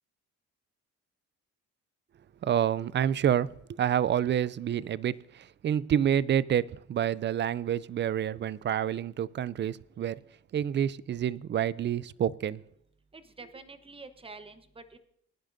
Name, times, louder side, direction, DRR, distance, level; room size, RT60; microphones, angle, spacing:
voice 1, 2.4-10.2 10.5-12.6, right 9 dB, 40° right, 0.4 m, -28 dB
voice 2, 13.1-15.0, right 3 dB, 20° right, 1.0 m, -47 dB
21.0 x 10.5 x 2.6 m
cardioid pair, 90°, 30 cm